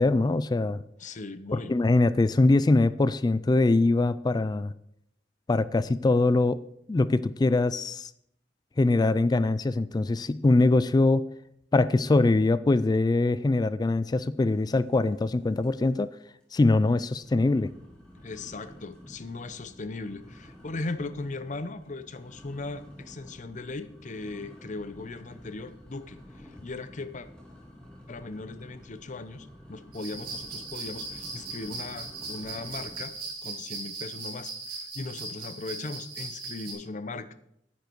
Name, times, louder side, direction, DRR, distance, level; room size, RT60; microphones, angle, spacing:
voice 1, 0.0-0.8 1.5-4.7 5.5-6.6 6.9-8.1 8.8-11.3 11.7-16.1 16.5-17.7, left 2 dB, 20° left, 16 dB, 0.3 m, -23 dB
voice 2, 1.0-1.7 18.2-27.3 28.1-33.1 33.4-37.3, left 3 dB, 45° left, 12 dB, 0.7 m, -38 dB
sound 1, 14.9-15.3 15.6-16.0 16.4-16.5 17.1-33.2, left 1 dB, 5° left, 2.6 m, -50 dB
sound 2, 29.9-36.7, right 3 dB, 50° right, 3.6 m, -38 dB
9.6 x 9.3 x 4.6 m, 0.75 s
head